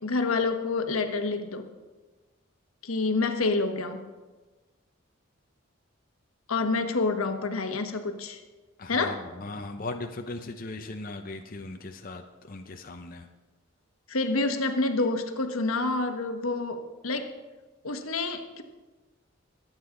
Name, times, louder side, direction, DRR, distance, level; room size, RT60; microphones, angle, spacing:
voice 1, 0.0-1.7 2.8-4.1 6.5-8.4 8.9-9.2 14.1-17.4 17.8-18.6, left 3 dB, 90° left, 7 dB, 1.2 m, -28 dB
voice 2, 8.8-13.3, left 2 dB, 40° left, 5 dB, 0.7 m, -38 dB
22.5 x 8.9 x 3.8 m, 1.2 s
head